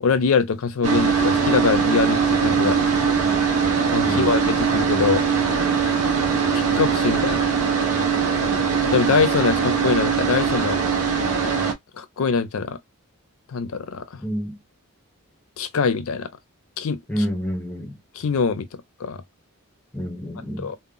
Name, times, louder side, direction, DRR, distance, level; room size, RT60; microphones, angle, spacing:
voice 1, 0.0-2.8 3.9-5.2 6.5-7.4 8.8-10.8 12.0-12.8 13.5-14.2 15.6-16.3 16.8-17.0 18.1-18.7 19.0-19.2 20.6-20.8, left 5 dB, 70° left, 0.4 m, -23 dB
sound 1, 0.8-11.7, right 6 dB, 80° right, 0.6 m, -21 dB
voice 2, 14.2-14.6 17.1-18.0 19.9-20.7, equal, 10° left, 0.8 m, -28 dB
2.1 x 2.0 x 3.7 m
head